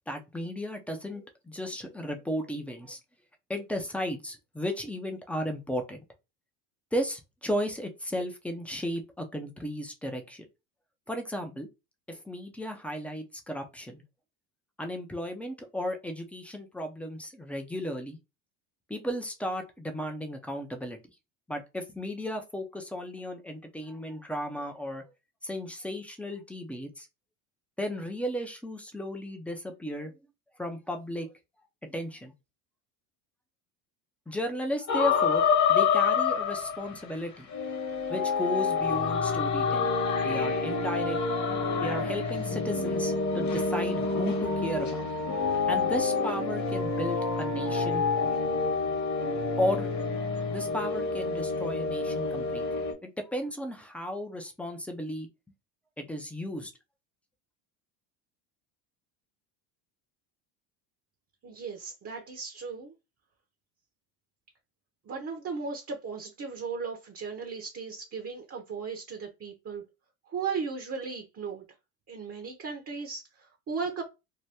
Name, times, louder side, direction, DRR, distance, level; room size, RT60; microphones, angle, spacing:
voice 1, 0.1-3.0 3.5-6.1 6.9-10.5 11.1-11.7 12.1-14.0 14.8-18.2 18.9-21.0 21.5-25.0 25.4-27.1 27.8-30.1 30.6-31.3 31.9-32.3 34.3-35.4 35.7-37.5 38.1-39.9 40.2-41.2 41.8-45.1 45.7-48.0 49.6-49.9 50.5-52.7 53.0-55.3 56.0-56.7, equal, 5° left, 0.5 m, -34 dB
sound 1, 34.9-37.1 37.5-52.9, left 5 dB, 35° left, 1.1 m, -28 dB
voice 2, 61.4-62.9 65.1-69.8 70.3-71.6 72.1-74.0, right 5 dB, 30° right, 0.7 m, -36 dB
2.8 x 2.1 x 3.3 m
supercardioid pair, 95°, 49 cm